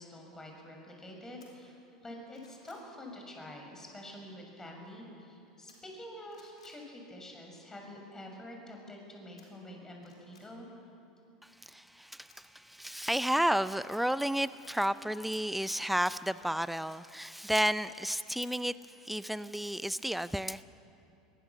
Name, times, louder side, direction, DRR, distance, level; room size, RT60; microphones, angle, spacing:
voice 1, 0.0-1.8 2.0-10.7, left 1 dB, 15° left, 1 dB, 6.5 m, -47 dB
sound 1, 1.4-1.5 2.0-2.9 5.7-6.0 6.3-6.8 9.4-9.5 10.0-10.5 12.3-13.3 16.0-17.0 17.4-17.5, left 4 dB, 85° left, 4.2 m, -62 dB
voice 2, 11.4-20.6, equal, 5° right, 16 dB, 0.5 m, -32 dB
23.5 x 19.0 x 7.2 m, 2.7 s
hypercardioid pair, 80°, 3 cm